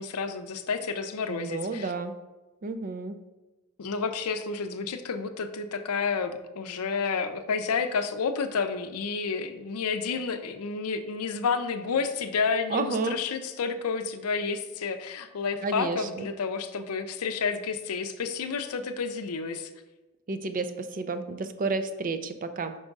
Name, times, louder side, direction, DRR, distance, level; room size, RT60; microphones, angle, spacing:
voice 1, 0.0-1.9 3.8-19.7, left 5 dB, 80° left, 8 dB, 0.5 m, -30 dB
voice 2, 1.3-2.2 2.6-3.2 12.7-13.2 15.6-16.3 20.3-22.8, right 3 dB, 40° right, 9 dB, 0.4 m, -31 dB
5.4 x 3.5 x 5.2 m, 1.1 s
head